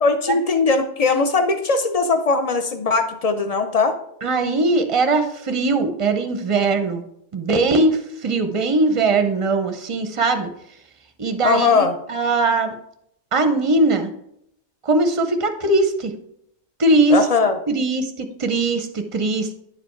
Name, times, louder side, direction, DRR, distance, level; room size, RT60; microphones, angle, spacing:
voice 1, 0.0-4.0 11.4-11.9 17.1-17.6, left 4 dB, 55° left, 7 dB, 0.4 m, -19 dB
voice 2, 4.2-7.0 7.3-10.5 11.2-12.7 13.3-14.1 14.8-16.1 16.8-17.2 17.7-19.6, right 2 dB, 35° right, 7 dB, 0.6 m, -20 dB
10.0 x 5.0 x 4.5 m, 0.75 s
omnidirectional pair, 1.5 m